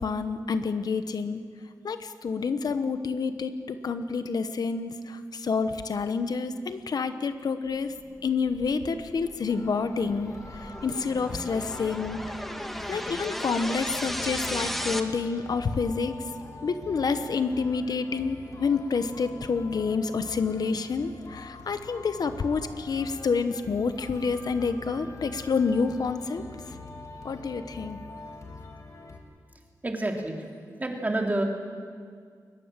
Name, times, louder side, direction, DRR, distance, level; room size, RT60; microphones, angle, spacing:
voice 1, 0.0-1.4 1.8-7.9 8.2-12.2 12.9-16.2 16.6-26.4 27.2-28.0, left 5 dB, 75° left, 10 dB, 1.0 m, -28 dB
sound 1, 8.0-15.0, equal, 5° left, 1.4 m, -36 dB
sound 2, 9.5-29.2, left 3 dB, 55° left, 2.5 m, -45 dB
voice 2, 29.8-30.4 30.8-31.4, right 2 dB, 25° right, 2 dB, 2.6 m, -28 dB
22.0 x 20.0 x 7.5 m, 2.1 s
wide cardioid pair, 125°, 7 cm